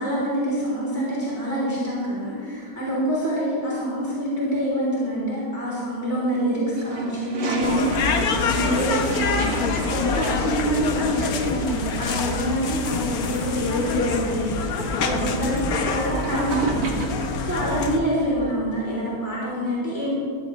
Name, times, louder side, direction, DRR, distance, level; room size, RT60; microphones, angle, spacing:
voice 1, 0.0-14.6 15.0-20.1, equal, 10° right, -7 dB, 3.0 m, -26 dB
Toilet flush, 6.7-17.4, right 3 dB, 80° right, 2.1 m, -34 dB
sound 1, 7.6-18.0, left 4 dB, 65° left, 1.4 m, -26 dB
15.5 x 13.0 x 3.1 m, 2.3 s
omnidirectional pair, 1.8 m